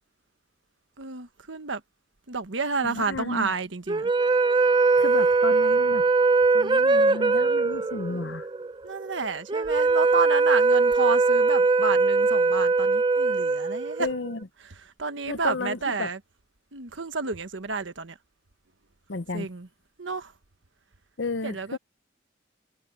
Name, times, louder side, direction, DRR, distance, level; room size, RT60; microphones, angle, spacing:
voice 1, 1.0-1.8 2.3-4.1 8.1-8.4 8.8-14.1 14.6-16.2 16.7-18.2 19.3-19.7 20.0-20.4 21.4-21.8, right 4 dB, 75° right, 1.3 m, -30 dB
voice 2, 2.8-3.5 5.0-6.1 6.5-8.5 14.0-14.4 15.3-16.1 19.1-19.5 21.2-21.8, left 3 dB, 70° left, 0.9 m, -32 dB
sound 1, 3.9-14.3, right 3 dB, 25° right, 0.5 m, -21 dB
head